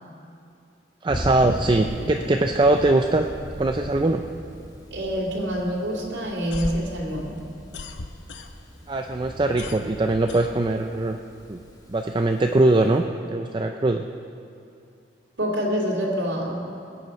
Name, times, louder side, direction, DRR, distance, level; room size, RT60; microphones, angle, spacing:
voice 1, 1.0-3.3 3.6-4.2 8.9-11.2 11.5-11.6 11.9-13.0 13.3-14.0, right 2 dB, 25° right, 5 dB, 0.4 m, -21 dB
Thunder, 1.1-13.0, equal, 20° left, 1.9 m, -38 dB
voice 2, 4.9-7.3 15.4-16.7, equal, 90° right, -3 dB, 2.8 m, -26 dB
sound 1, 6.3-8.9 9.2-11.1, left 3 dB, 85° left, 0.8 m, -36 dB
22.0 x 8.4 x 5.2 m, 2.5 s
head